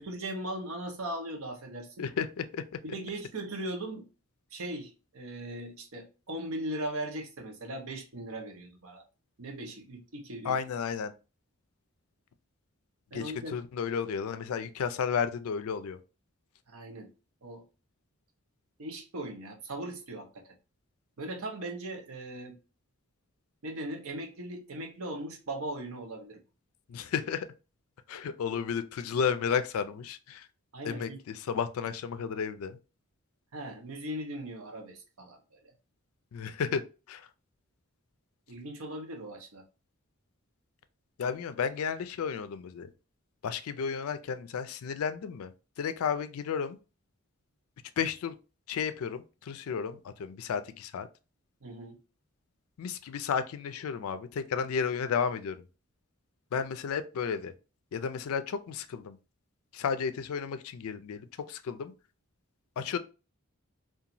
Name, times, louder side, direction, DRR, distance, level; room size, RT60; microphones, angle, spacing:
voice 1, 0.0-2.1 2.8-4.1 4.5-9.0 9.4-10.6 13.1-13.5 16.7-17.1 17.4-17.6 18.8-20.4 21.2-22.6 23.6-26.4 30.7-31.2 33.5-35.6 38.5-39.6 51.6-52.0, right 1 dB, 75° right, 0.7 m, -39 dB
voice 2, 2.0-2.6 10.4-11.1 13.1-16.0 26.9-27.5 28.1-30.5 30.8-32.8 36.3-36.8 37.1-37.3 41.2-42.9 43.4-45.5 45.8-46.8 48.0-48.3 48.7-51.1 52.8-55.6 56.5-57.5 57.9-59.2 59.7-61.9 62.8-63.0, left 6 dB, 80° left, 0.3 m, -32 dB
2.9 x 2.3 x 2.5 m
head